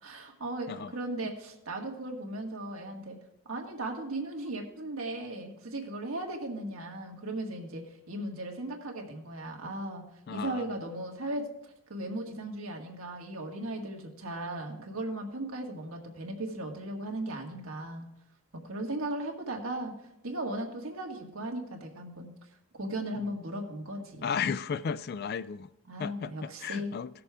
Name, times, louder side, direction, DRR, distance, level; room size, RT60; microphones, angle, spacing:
voice 1, 0.0-3.2 3.5-10.0 10.3-18.1 18.5-19.9 20.2-22.3 22.8-24.4 25.9-26.9, right 1 dB, 80° right, 1.8 m, -37 dB
voice 2, 10.3-10.7 24.2-25.7 26.0-27.1, left 6 dB, 50° left, 0.3 m, -34 dB
17.5 x 6.7 x 3.5 m
head